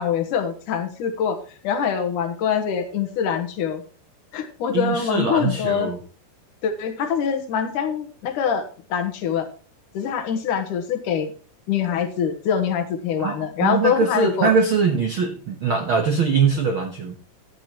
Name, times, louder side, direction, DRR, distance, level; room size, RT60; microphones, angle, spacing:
voice 1, 0.0-1.4 1.6-3.8 4.3-5.9 6.6-9.5 9.9-11.3 11.7-14.5, left 7 dB, 65° left, 5 dB, 2.6 m, -24 dB
voice 2, 4.7-6.0 13.2-13.3 13.6-17.1, right 5 dB, 70° right, 4 dB, 1.2 m, -22 dB
14.5 x 10.0 x 3.0 m, 0.38 s
omnidirectional pair, 4.2 m